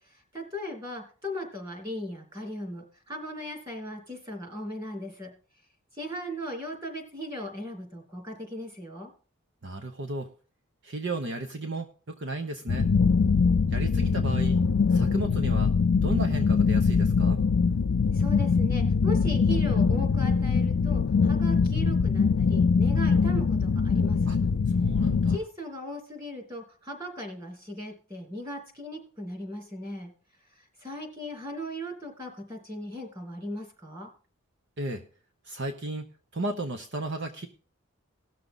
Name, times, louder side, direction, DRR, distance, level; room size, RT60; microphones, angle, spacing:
voice 1, 0.0-5.3 5.9-9.1 18.1-24.4 25.3-30.1 30.5-34.1, equal, 20° right, 2 dB, 3.2 m, -38 dB
voice 2, 9.6-10.3 10.8-12.9 13.7-14.6 14.9-15.7 16.0-17.4 24.3-24.4 24.7-25.4 34.8-35.0 35.4-36.1 36.3-37.5, right 2 dB, 55° right, 7 dB, 0.9 m, -34 dB
sound 1, 12.7-25.4, left 5 dB, 70° left, 0.5 m, -23 dB
18.5 x 6.7 x 4.0 m, 0.38 s
head